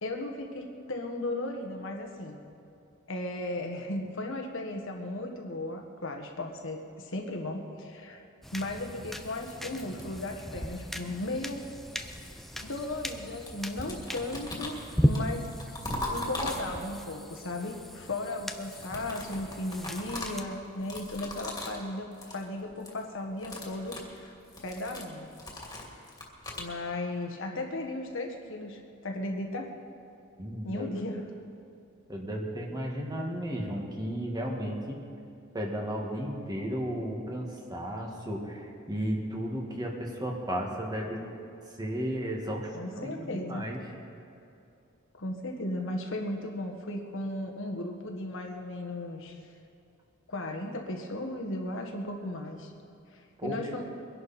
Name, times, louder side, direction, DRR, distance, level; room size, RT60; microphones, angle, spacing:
voice 1, 0.0-2.4 3.1-8.3 8.5-11.7 12.6-15.5 16.1-24.3 24.6-25.3 26.5-29.7 30.6-31.2 42.7-43.7 45.1-49.4 50.3-52.7 53.1-53.8, left 1 dB, 65° left, 3 dB, 1.6 m, -36 dB
sound 1, 8.4-20.4, equal, ahead, 0.7 m, -36 dB
sound 2, 9.1-10.6 11.6-13.2 13.5-17.1 18.5-21.9 22.1-22.4 22.7-23.0 23.3-26.7, left 1 dB, 20° left, 2.6 m, -40 dB
voice 2, 30.4-30.9 32.1-35.0 35.5-41.2 41.8-43.8 53.4-53.6, equal, 20° right, -1 dB, 1.9 m, -34 dB
23.0 x 11.5 x 4.3 m, 2.6 s
head